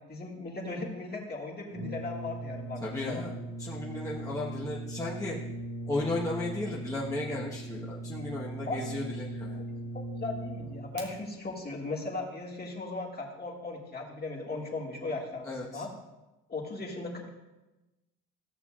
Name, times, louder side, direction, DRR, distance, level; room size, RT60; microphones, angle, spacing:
voice 1, 0.1-3.2 8.7-8.8 9.5-9.6 9.9-15.9 16.5-17.3, left 3 dB, 30° left, -2 dB, 1.9 m, -37 dB
Brass instrument, 1.7-11.1, right 2 dB, 80° right, 1.7 m, -39 dB
voice 2, 2.8-3.3 3.6-5.4 5.9-9.6 15.4-15.8, left 2 dB, 10° left, -6 dB, 1.2 m, -35 dB
15.0 x 6.8 x 2.4 m, 1.0 s
cardioid pair, 90°, 30 cm